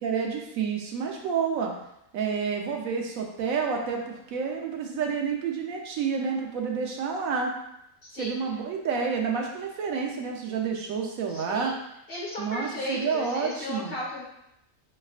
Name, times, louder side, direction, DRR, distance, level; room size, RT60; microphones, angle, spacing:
voice 1, 0.0-1.7 2.1-7.5 8.2-11.7 12.4-14.0, right 6 dB, 85° right, 2 dB, 1.2 m, -29 dB
voice 2, 8.0-8.4 11.3-11.8 12.1-14.2, left 2 dB, 45° left, -4 dB, 1.3 m, -35 dB
5.7 x 3.4 x 2.4 m, 0.80 s
omnidirectional pair, 1.4 m